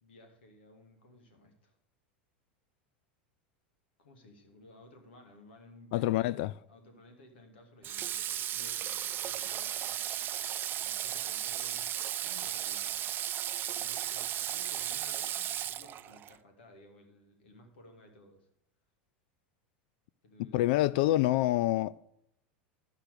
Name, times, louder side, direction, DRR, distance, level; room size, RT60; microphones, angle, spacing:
voice 1, 0.0-1.8 4.0-10.1 10.8-11.9 12.2-13.0 13.7-18.5 20.2-20.9, left 1 dB, 85° left, 2.6 m, -56 dB
voice 2, 5.9-6.5 20.5-22.0, left 16 dB, 65° left, 0.3 m, -26 dB
Water / Water tap faucet, 7.8-16.4, right 11 dB, 35° right, 0.5 m, -35 dB
12.0 x 5.9 x 6.7 m
hypercardioid pair, 105°, 6 cm